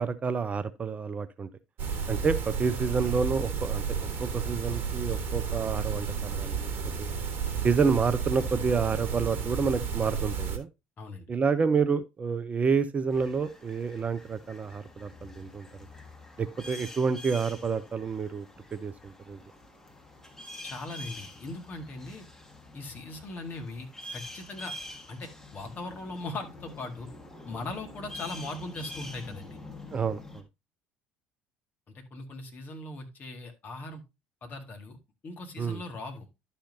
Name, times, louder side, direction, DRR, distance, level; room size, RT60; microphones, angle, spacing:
voice 1, 0.0-1.5 2.1-3.8 4.2-6.7 7.0-7.1 7.6-10.7 11.3-15.7 16.4-18.5 18.7-19.4 29.9-30.4 35.6-35.8, right 5 dB, 25° right, 0.5 m, -28 dB
sound 1, 1.8-10.6, right 6 dB, 45° right, 1.4 m, -32 dB
sound 2, 13.1-30.4, left 2 dB, 10° left, 1.7 m, -46 dB
voice 2, 20.6-22.3 22.7-24.8 25.1-27.1 27.5-29.6 31.9-34.0 34.4-35.0 35.2-36.3, left 2 dB, 35° left, 1.9 m, -39 dB
11.5 x 5.7 x 2.8 m
figure-of-eight pair, 60°, 5 cm